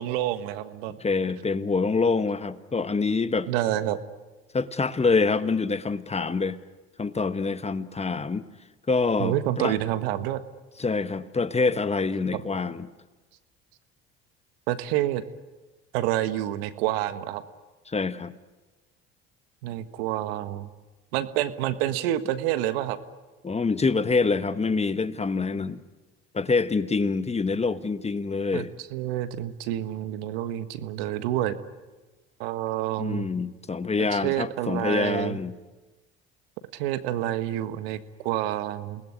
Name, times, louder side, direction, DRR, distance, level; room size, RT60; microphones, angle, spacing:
voice 1, 0.0-1.0 3.5-4.0 9.2-10.4 12.3-12.4 14.7-15.2 15.9-17.4 19.6-20.7 21.1-23.0 28.5-28.6 28.9-31.6 32.4-33.3 34.0-35.4 36.7-39.0, right 13 dB, 80° right, 11 dB, 1.6 m, -28 dB
voice 2, 1.0-3.5 4.5-6.6 7.0-8.4 8.9-9.8 10.8-12.9 17.9-18.3 23.4-25.8 26.3-28.7 33.0-35.5, left 4 dB, 20° left, 12 dB, 1.3 m, -26 dB
28.0 x 20.0 x 9.8 m, 1.2 s
supercardioid pair, 80°, 30 cm